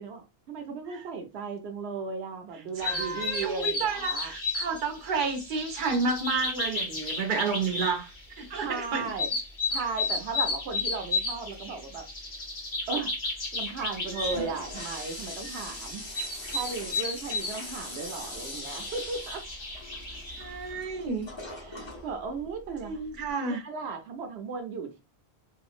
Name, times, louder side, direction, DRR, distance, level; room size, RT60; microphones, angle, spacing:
voice 1, 0.0-4.3 8.5-9.3 9.7-12.1 12.9-13.1 13.5-16.1 16.5-19.4 21.5-22.9 23.4-25.0, right 4 dB, 80° right, 0.9 m, -36 dB
sound 1, 2.8-20.5, left 3 dB, 50° left, 1.0 m, -34 dB
voice 2, 2.8-8.1 8.4-9.1 20.4-21.3 22.8-23.6, right 4 dB, 55° right, 0.8 m, -30 dB
Toilet flush, 14.0-23.3, left 1 dB, 30° left, 0.8 m, -42 dB
2.8 x 2.4 x 2.4 m
omnidirectional pair, 1.1 m